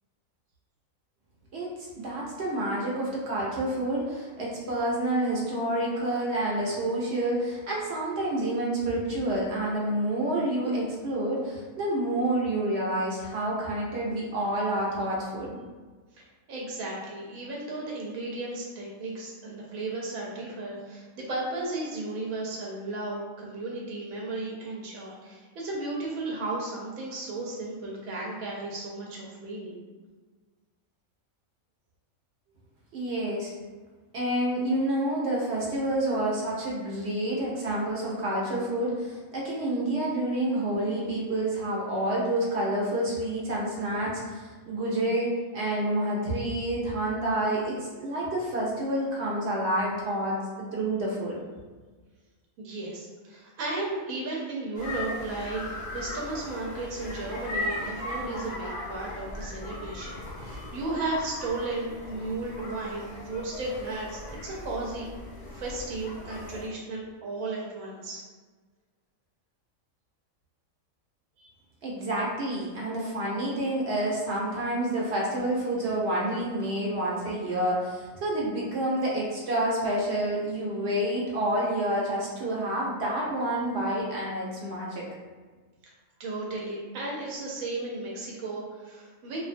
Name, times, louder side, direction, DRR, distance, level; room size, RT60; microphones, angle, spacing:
voice 1, 1.5-15.6 32.9-33.5 34.1-51.4 71.8-85.1, right 1 dB, 60° right, -4 dB, 0.7 m, -28 dB
voice 2, 16.1-29.8 52.6-55.6 55.9-65.1 65.5-68.2 71.4-71.5 86.2-89.4, right 2 dB, 90° right, -3 dB, 1.0 m, -34 dB
sound 1, 54.8-66.7, left 1 dB, 60° left, 0.5 m, -38 dB
2.4 x 2.2 x 2.5 m, 1.4 s
omnidirectional pair, 1.4 m